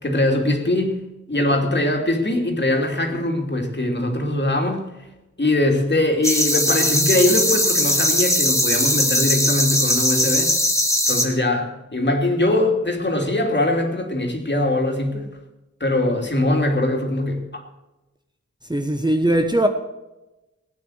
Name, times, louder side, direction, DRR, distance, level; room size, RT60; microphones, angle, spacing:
voice 1, 0.0-4.9 5.4-10.5 11.1-15.3 15.8-17.6, left 1 dB, 35° left, 3.0 m, -21 dB
sound 1, 6.2-11.3, left 1 dB, 10° left, 2.4 m, -20 dB
voice 2, 18.7-19.7, right 1 dB, 15° right, 1.2 m, -19 dB
17.0 x 9.5 x 6.5 m
wide cardioid pair, 85°, 29 cm